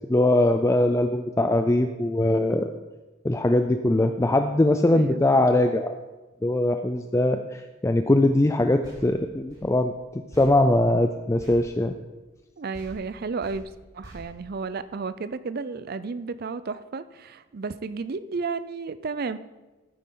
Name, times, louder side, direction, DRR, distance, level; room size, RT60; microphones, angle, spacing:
voice 1, 0.1-2.7 3.2-5.9 6.4-11.9, left 1 dB, 15° left, 7 dB, 0.3 m, -21 dB
voice 2, 4.8-5.2 12.6-13.7 13.9-19.4, right 4 dB, 45° right, 13 dB, 0.4 m, -32 dB
sound 1, 8.8-12.5 12.7-15.2, equal, 20° right, 4.2 m, -48 dB
14.0 x 9.1 x 3.8 m, 1.2 s
head